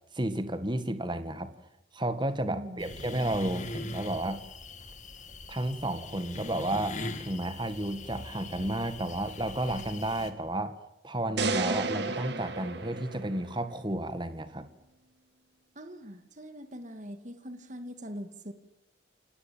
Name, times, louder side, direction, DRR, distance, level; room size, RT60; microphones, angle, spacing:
voice 1, 0.1-1.5 1.9-4.4 5.5-10.7 11.0-14.7, right 1 dB, 25° right, 11 dB, 1.8 m, -32 dB
voice 2, 2.5-2.8 15.8-18.5, equal, 40° right, 8 dB, 2.5 m, -42 dB
sound 1, 2.8-10.3, left 2 dB, 40° left, 2.5 m, -41 dB
sound 2, 11.4-13.7, right 3 dB, 60° right, 2.3 m, -32 dB
29.5 x 18.0 x 8.9 m, 0.87 s
head